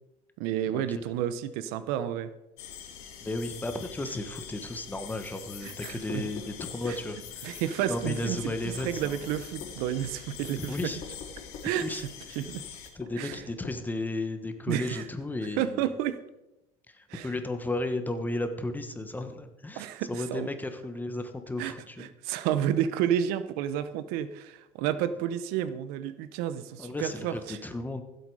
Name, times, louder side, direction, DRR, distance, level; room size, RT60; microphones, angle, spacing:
voice 1, 0.4-2.3 5.6-6.3 6.8-7.0 7.4-8.4 8.6-10.9 11.6-12.6 13.2-13.4 14.7-15.1 15.6-16.2 17.1-17.3 19.8-20.5 21.6-27.6, right 10 dB, 75° right, 13 dB, 0.9 m, -31 dB
sound 1, 2.6-12.9, left 8 dB, 80° left, 2.4 m, -44 dB
voice 2, 3.2-7.6 7.9-9.1 10.6-11.0 11.6-12.0 12.9-15.8 16.9-22.1 26.8-28.0, left 2 dB, 10° left, 8 dB, 1.3 m, -34 dB
sound 2, 6.1-7.0 8.0-8.2 8.8-9.0 9.6-9.8 11.0-11.7 13.0-13.8, left 6 dB, 45° left, 3.7 m, -42 dB
15.0 x 8.1 x 4.9 m, 0.93 s
cardioid pair, 120°, 16 cm